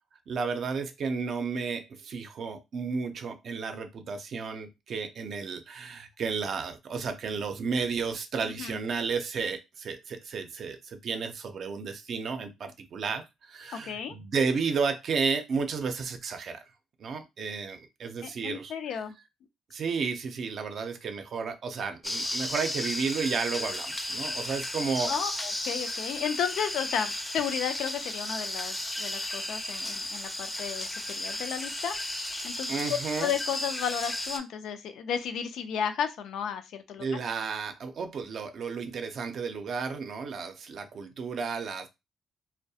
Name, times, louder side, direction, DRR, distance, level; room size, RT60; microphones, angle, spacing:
voice 1, 0.3-16.6 17.0-19.0 19.7-25.1 32.7-33.3 37.0-41.9, right 5 dB, 60° right, 0.5 m, -32 dB
voice 2, 8.4-8.8 13.7-14.2 18.2-19.1 25.1-32.0 32.4-37.1, left 8 dB, 80° left, 0.3 m, -33 dB
sound 1, 22.0-34.4, left 1 dB, 15° left, 0.4 m, -34 dB
2.3 x 2.1 x 2.7 m
cardioid pair, 90°, 0 cm